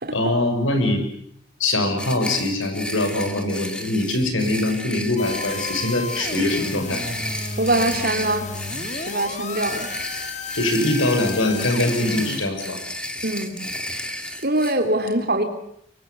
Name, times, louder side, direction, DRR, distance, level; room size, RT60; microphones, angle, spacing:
voice 1, 0.1-1.0 1.6-7.0 10.5-12.8, left 2 dB, 90° left, 6 dB, 6.0 m, -23 dB
sound 1, 2.0-14.7, left 1 dB, 5° left, 2.2 m, -32 dB
sound 2, 5.2-12.4, left 3 dB, 35° left, 2.0 m, -33 dB
voice 2, 7.6-8.5 9.1-9.9 13.2-13.6 14.4-15.4, right 1 dB, 50° right, 5 dB, 3.1 m, -23 dB
24.5 x 23.0 x 8.4 m, 0.70 s
head